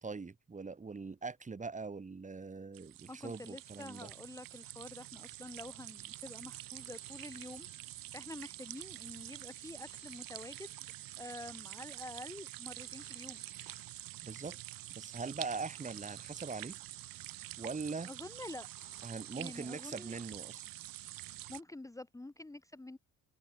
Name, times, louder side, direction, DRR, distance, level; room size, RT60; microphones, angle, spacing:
voice 1, 0.0-4.1 14.2-14.6 14.9-16.8 17.6-18.1 19.0-20.7, right 4 dB, 20° right, 2.0 m, -42 dB
sound 1, 2.7-21.6, right 15 dB, 80° right, 1.8 m, -47 dB
voice 2, 3.1-10.7 11.2-13.4 18.1-18.7 19.4-20.2 21.5-23.0, left 2 dB, 10° left, 1.4 m, -48 dB
Telephone, 6.8-8.6 9.8-11.6 12.7-14.6 15.7-17.6 18.7-20.6, left 13 dB, 80° left, 7.6 m, -66 dB
open air
cardioid pair, 120°, 34 cm